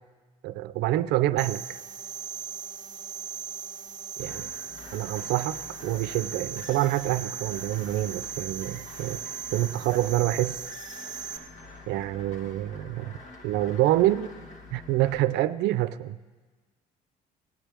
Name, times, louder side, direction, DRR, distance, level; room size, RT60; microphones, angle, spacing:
voice 1, 0.4-1.8 4.2-4.4 4.9-9.2 9.5-10.6 11.9-13.2 13.4-14.4 14.7-16.2, right 15 dB, 85° right, 14 dB, 0.5 m, -27 dB
sound 1, 1.4-11.4, right 7 dB, 25° right, 0.9 m, -38 dB
sound 2, 4.2-15.2, left 3 dB, 45° left, 1.3 m, -46 dB
19.0 x 8.9 x 3.4 m, 1.3 s
cardioid pair, 110°, 17 cm